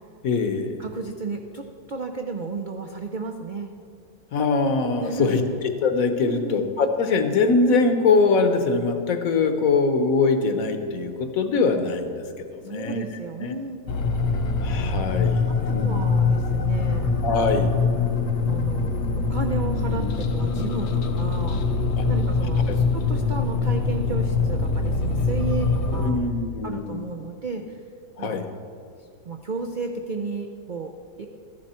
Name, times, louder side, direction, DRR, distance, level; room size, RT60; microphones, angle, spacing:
voice 1, 0.2-0.8 4.3-13.0 13.4-13.6 14.6-16.0 17.2-17.7 22.0-22.1 25.9-27.0 28.2-28.5, left 4 dB, 60° left, 7 dB, 1.2 m, -23 dB
voice 2, 0.8-3.7 5.0-5.6 6.2-6.7 12.6-13.9 15.8-17.1 18.5-21.6 22.1-26.2 26.6-27.8 28.2-28.4 29.2-31.3, right 3 dB, 80° right, 3 dB, 0.4 m, -33 dB
sound 1, 13.9-26.1, left 4 dB, 90° left, 1.5 m, -23 dB
14.0 x 10.5 x 4.3 m, 2.3 s
omnidirectional pair, 1.7 m